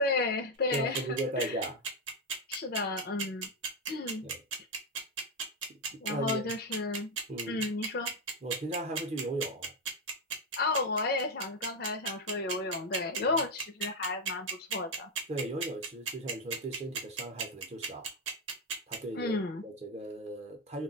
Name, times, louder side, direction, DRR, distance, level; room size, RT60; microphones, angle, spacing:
voice 1, 0.0-1.6 2.5-3.5 3.9-4.3 6.0-7.1 7.5-8.1 10.6-15.1 19.1-19.6, left 3 dB, 50° left, 0.4 m, -32 dB
voice 2, 0.7-1.8 4.2-4.4 5.7-6.5 7.3-7.7 8.4-9.7 13.2-13.4 15.3-18.1 18.9-19.4 19.6-20.8, right 1 dB, 35° right, 0.6 m, -37 dB
sound 1, 0.7-19.0, right 5 dB, 75° right, 0.8 m, -34 dB
2.3 x 2.2 x 3.9 m
head